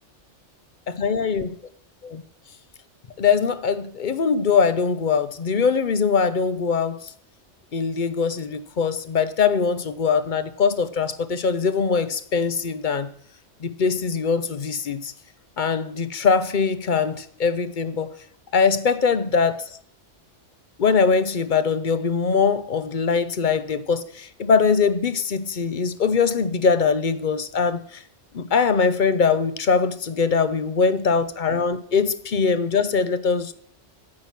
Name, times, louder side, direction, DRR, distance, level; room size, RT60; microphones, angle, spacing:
voice 1, 0.9-1.5 2.0-2.2 3.2-7.1 7.7-13.1 13.6-15.1 15.6-18.1 18.5-19.6 20.8-28.0 28.3-33.5, left 5 dB, 50° left, 13 dB, 0.7 m, -22 dB
9.7 x 7.6 x 5.8 m, 0.66 s
omnidirectional pair, 1.2 m